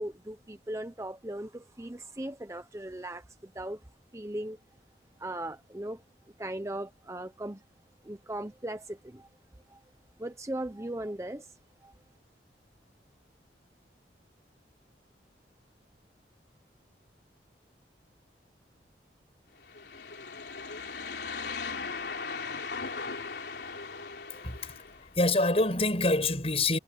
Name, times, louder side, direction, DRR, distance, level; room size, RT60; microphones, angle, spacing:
voice 1, 0.0-3.8 4.1-4.6 5.2-6.0 6.4-7.6 8.0-9.3 9.7-9.8 10.2-11.5 11.8-11.9, right 1 dB, 15° right, 0.9 m, -38 dB
sound 1, 19.6-25.1, left 4 dB, 75° left, 3.5 m, -38 dB
voice 2, 24.3-26.8, left 2 dB, 35° left, 7.0 m, -27 dB
head